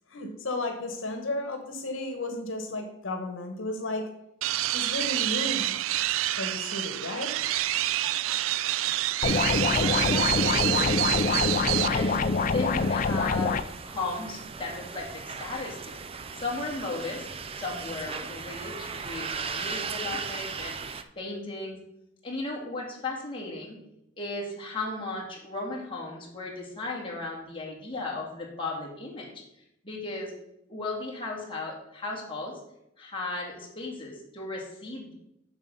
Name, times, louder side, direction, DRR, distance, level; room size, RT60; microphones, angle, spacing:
voice 1, 0.1-4.1 4.7-5.7 6.4-7.4, left 2 dB, 85° left, 5 dB, 1.2 m, -33 dB
sound 1, 4.4-11.9, right 14 dB, 90° right, 0.3 m, -27 dB
sound 2, 9.2-13.6, left 4 dB, 40° left, 0.4 m, -25 dB
sound 3, 9.2-21.0, right 5 dB, 30° right, 0.5 m, -38 dB
voice 2, 9.6-11.5 11.9-12.2 12.5-13.6 13.8-16.0 16.4-17.3 17.5-20.8 21.2-21.8 22.2-23.8 24.2-29.3 29.8-30.3 30.7-32.6 33.0-35.1, left 2 dB, 25° left, -3 dB, 2.3 m, -35 dB
7.4 x 6.2 x 5.4 m, 0.80 s
head